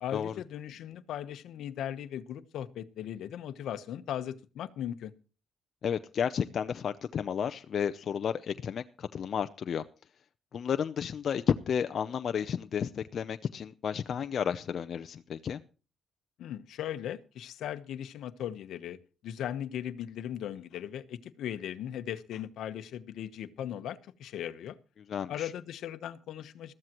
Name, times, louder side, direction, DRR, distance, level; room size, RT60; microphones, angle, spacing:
voice 1, 0.0-5.1 16.4-19.0 19.2-24.8 25.3-26.7, left 10 dB, 75° left, 1.0 m, -38 dB
voice 2, 5.8-9.8 10.5-15.6 25.1-25.5, left 7 dB, 55° left, 0.6 m, -32 dB
20.5 x 14.0 x 3.0 m
cardioid pair, 90°, 0 cm